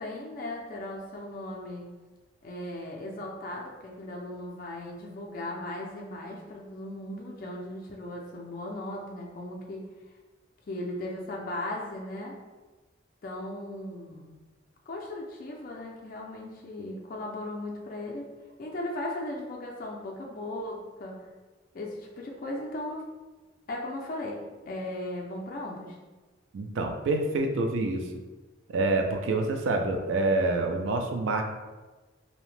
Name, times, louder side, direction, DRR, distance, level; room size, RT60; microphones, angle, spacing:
voice 1, 0.0-1.9 2.4-9.9 10.7-12.3 13.2-14.4 14.9-18.3 18.6-21.3 21.7-23.0 23.7-24.4 24.7-26.0, left 1 dB, 45° left, -1 dB, 0.4 m, -37 dB
voice 2, 26.5-28.0 28.7-31.4, right 2 dB, 80° right, 5 dB, 0.3 m, -27 dB
2.7 x 2.1 x 3.1 m, 1.2 s
head